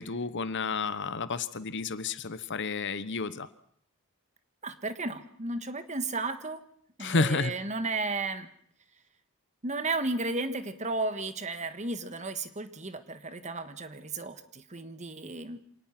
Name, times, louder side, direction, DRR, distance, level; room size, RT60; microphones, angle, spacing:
voice 1, 0.0-3.5 7.0-7.5, left 4 dB, 55° left, 15 dB, 1.0 m, -30 dB
voice 2, 4.6-6.6 7.0-8.5 9.6-15.6, right 3 dB, 30° right, 10 dB, 1.5 m, -34 dB
27.0 x 18.5 x 6.0 m, 0.63 s
head